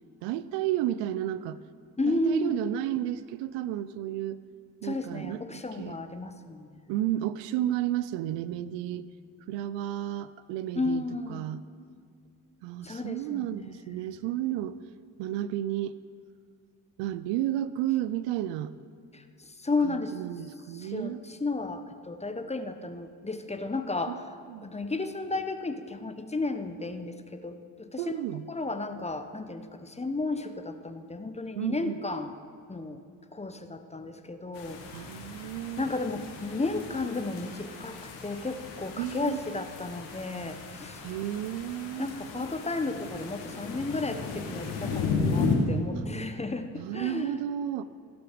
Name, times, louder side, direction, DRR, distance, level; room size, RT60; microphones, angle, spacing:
voice 1, 0.2-1.6 2.1-4.4 4.8-6.0 6.9-9.1 9.5-11.0 11.3-11.6 12.6-14.8 15.2-16.0 17.0-18.7 19.9-21.2 24.1-24.2 24.5-24.7 28.0-28.4 31.6-31.9 34.9-35.8 39.0-39.4 41.0-42.1 45.9-46.1 46.8-47.8, right 12 dB, 80° right, 16 dB, 0.5 m, -32 dB
voice 2, 2.0-2.5 4.8-6.8 10.7-11.5 12.8-14.2 19.1-20.2 20.7-24.3 24.6-28.1 28.5-32.3 32.7-33.0 33.3-41.0 42.0-47.4, left 3 dB, 15° left, 8 dB, 0.8 m, -33 dB
sound 1, 34.5-45.6, left 4 dB, 85° left, 1.7 m, -35 dB
16.0 x 6.0 x 5.0 m, 2.3 s
supercardioid pair, 60°, 44 cm